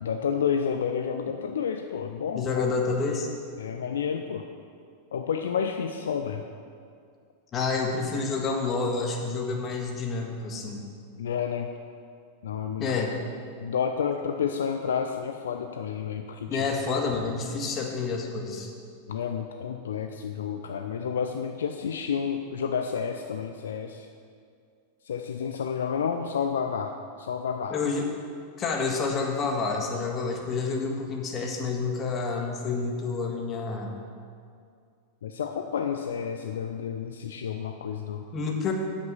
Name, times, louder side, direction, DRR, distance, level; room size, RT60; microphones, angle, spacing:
voice 1, 0.0-2.7 3.6-4.5 5.1-6.4 11.2-11.7 12.4-12.9 13.6-16.6 19.1-24.1 25.0-27.8 35.2-38.2, left 7 dB, 65° left, 5 dB, 0.5 m, -30 dB
voice 2, 2.3-3.3 7.5-10.9 12.8-13.1 16.5-18.7 27.7-28.1 28.6-33.9 38.3-38.7, left 4 dB, 30° left, 1 dB, 1.6 m, -29 dB
8.5 x 7.8 x 7.3 m, 2.2 s
figure-of-eight pair, 90°, 0 cm